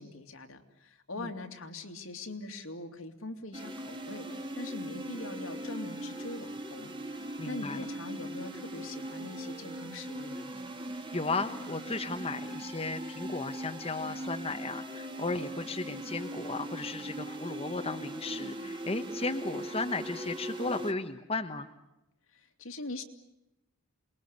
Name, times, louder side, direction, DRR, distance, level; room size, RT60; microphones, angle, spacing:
voice 1, 0.0-4.3 4.5-10.5 22.3-23.0, left 2 dB, 75° left, 5 dB, 2.6 m, -42 dB
sound 1, 3.5-20.9, right 1 dB, 25° right, 2.1 m, -40 dB
voice 2, 7.4-7.8 11.1-21.7, left 3 dB, 30° left, 6 dB, 1.2 m, -35 dB
28.5 x 21.5 x 8.2 m, 0.89 s
head